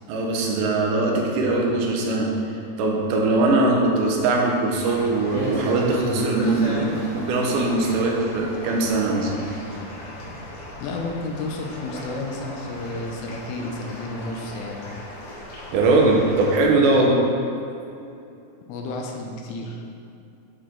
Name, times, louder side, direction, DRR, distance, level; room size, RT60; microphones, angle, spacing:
voice 1, 0.1-2.3 2.8-9.5 15.7-17.2, right 2 dB, 80° right, 0 dB, 2.7 m, -21 dB
sound 1, 4.7-16.6, equal, 65° left, 2.9 m, -34 dB
voice 2, 10.8-14.9 16.9-17.2 18.7-19.8, left 2 dB, 85° left, 1 dB, 2.6 m, -31 dB
8.2 x 4.7 x 3.7 m, 2.7 s
omnidirectional pair, 4.3 m